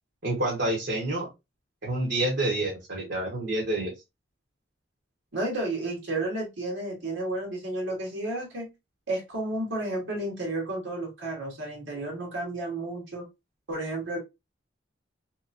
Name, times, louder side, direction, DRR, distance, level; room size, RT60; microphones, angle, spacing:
voice 1, 0.2-1.3 1.8-3.9, right 1 dB, 60° right, -3 dB, 1.1 m, -28 dB
voice 2, 5.3-8.7 9.1-13.2 13.7-14.2, right 2 dB, 80° right, -1 dB, 1.4 m, -32 dB
3.1 x 2.9 x 2.5 m, 0.22 s
head